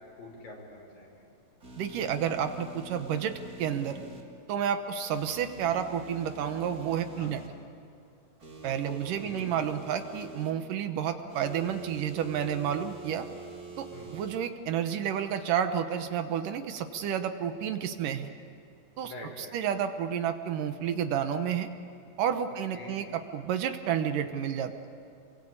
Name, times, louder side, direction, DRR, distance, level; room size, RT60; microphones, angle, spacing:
voice 1, 0.2-1.2 7.2-7.3 8.8-9.7 13.9-14.1 19.0-19.5 22.7-23.1, left 2 dB, 70° left, -1 dB, 7.6 m, -45 dB
sound 1, 1.6-4.2 5.1-7.5 8.4-10.5 11.3-14.4, right 2 dB, 25° right, 3.8 m, -46 dB
voice 2, 1.8-4.0 4.5-7.4 8.6-13.3 13.8-18.3 19.0-21.7 22.2-24.9, right 8 dB, 70° right, 8 dB, 2.5 m, -30 dB
28.5 x 23.5 x 8.8 m, 2.5 s
omnidirectional pair, 4.2 m